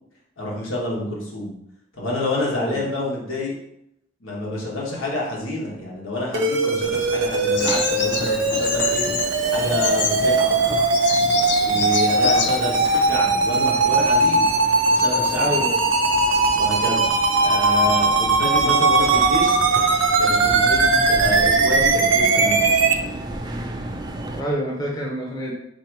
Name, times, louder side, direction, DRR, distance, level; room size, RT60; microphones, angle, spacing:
voice 1, 0.4-1.5 1.9-3.5 4.2-9.0 9.5-10.8 11.6-14.5 14.9-15.6 16.5-17.1 17.4-19.6 20.2-22.7, left 1 dB, 85° left, -3 dB, 1.3 m, -28 dB
sound 1, 6.3-22.9, right 3 dB, 70° right, 0.6 m, -19 dB
sound 2, 6.8-24.4, right 1 dB, 20° right, 0.3 m, -34 dB
Bird vocalization bird call bird song, 7.6-13.2, left 6 dB, 55° left, 0.4 m, -28 dB
voice 2, 15.4-15.9 24.4-25.5, equal, 20° left, -3 dB, 0.8 m, -27 dB
3.9 x 2.9 x 4.6 m, 0.77 s
head